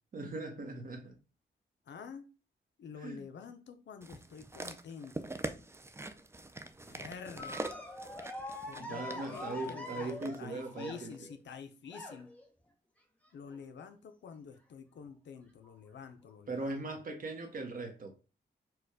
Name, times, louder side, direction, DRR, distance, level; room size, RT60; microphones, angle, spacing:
voice 1, 0.1-1.2 2.9-3.3 8.8-11.3 16.5-18.1, right 3 dB, 50° right, 0.9 m, -40 dB
voice 2, 1.9-2.2 2.8-5.3 6.8-7.7 8.7-12.3 13.3-16.8, left 6 dB, 75° left, 0.5 m, -48 dB
sound 1, 4.0-10.4 11.1-11.2, right 2 dB, 15° right, 0.4 m, -44 dB
sound 2, 7.4-11.3 11.9-12.4 13.5-13.8 14.3-14.4 15.6-15.7 16.6-16.7, left 2 dB, 10° left, 0.9 m, -44 dB
4.6 x 2.2 x 4.7 m
wide cardioid pair, 115°, 19 cm